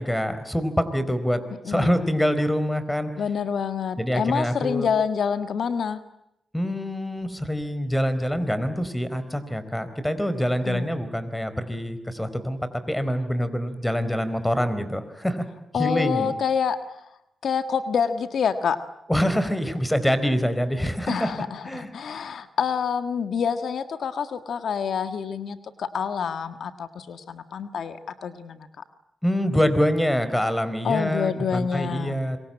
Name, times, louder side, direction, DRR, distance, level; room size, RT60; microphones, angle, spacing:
voice 1, 0.0-1.4 1.7-3.1 4.0-4.9 6.5-12.6 12.9-15.5 15.7-16.3 19.1-21.3 21.6-21.9 29.2-32.4, equal, 10° left, 12 dB, 4.4 m, -25 dB
voice 2, 3.2-6.0 10.6-10.9 15.7-17.0 17.4-18.8 21.1-28.7 30.8-32.2, left 7 dB, 80° left, 9 dB, 1.6 m, -27 dB
26.5 x 24.0 x 8.9 m, 0.83 s
cardioid pair, 60°, 0 cm